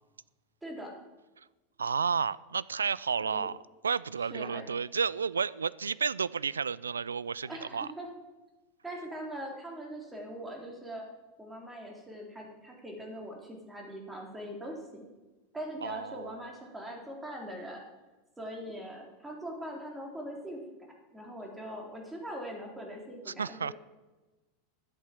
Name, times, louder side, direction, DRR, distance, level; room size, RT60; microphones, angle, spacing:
voice 1, 0.6-0.9 3.2-3.5 4.2-4.6 7.4-8.1 8.8-11.0 11.4-15.1 15.5-17.8 18.4-20.6 21.1-23.7, equal, 10° right, 0 dB, 3.8 m, -41 dB
voice 2, 1.8-3.6 3.8-7.9 15.8-16.4 23.3-23.7, right 6 dB, 80° right, 20 dB, 0.3 m, -31 dB
11.5 x 8.6 x 7.5 m, 1.2 s
figure-of-eight pair, 85°, 0 cm